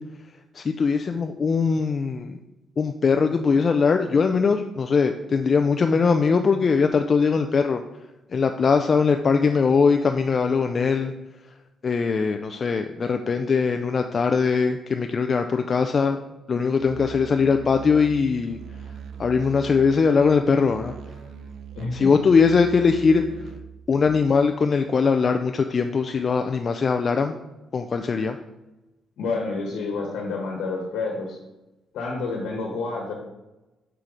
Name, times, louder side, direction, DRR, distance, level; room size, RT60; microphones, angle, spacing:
voice 1, 0.6-2.3 2.8-7.8 8.3-11.1 11.8-16.2 16.5-18.6 19.2-20.9 21.9-23.2 23.9-27.4 27.7-28.3, left 5 dB, 35° left, 6 dB, 0.3 m, -21 dB
Musical instrument, 16.8-24.4, right 7 dB, 65° right, 0.5 m, -41 dB
voice 2, 21.7-22.2 29.2-31.4 31.9-33.1, left 3 dB, 85° left, 0 dB, 1.1 m, -29 dB
5.6 x 4.6 x 3.8 m, 1.0 s
cardioid pair, 125°, 0 cm